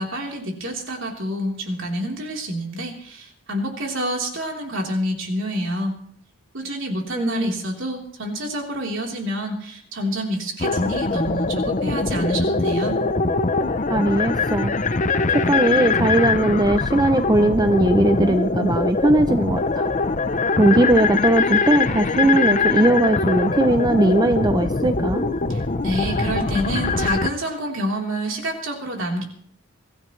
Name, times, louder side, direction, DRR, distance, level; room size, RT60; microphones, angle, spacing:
voice 1, 0.0-5.9 6.5-13.0 25.5-29.2, equal, 60° right, 0 dB, 3.6 m, -28 dB
voice 2, 7.1-7.6 13.9-14.7 15.3-19.9 20.6-25.3, right 1 dB, 20° right, 8 dB, 0.5 m, -19 dB
sound 1, 10.6-27.3, left 3 dB, 35° left, 0.7 m, -22 dB
23.5 x 15.0 x 3.2 m, 0.62 s
head